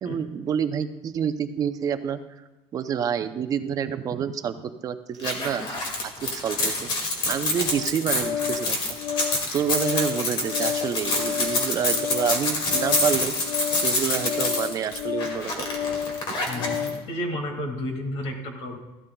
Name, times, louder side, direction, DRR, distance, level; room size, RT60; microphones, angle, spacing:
voice 1, 0.0-2.2 2.7-5.6 6.0-6.9 7.3-9.0 9.5-13.3 13.8-15.7, right 8 dB, 35° right, 10 dB, 0.5 m, -28 dB
sound 1, 5.2-16.9, left 2 dB, 50° left, 2.1 m, -27 dB
Organ, 7.6-17.1, left 8 dB, 90° left, 0.5 m, -31 dB
voice 2, 16.5-18.8, left 1 dB, 65° left, 3 dB, 2.1 m, -32 dB
14.5 x 12.5 x 2.3 m, 1.1 s
cardioid pair, 165°, 11 cm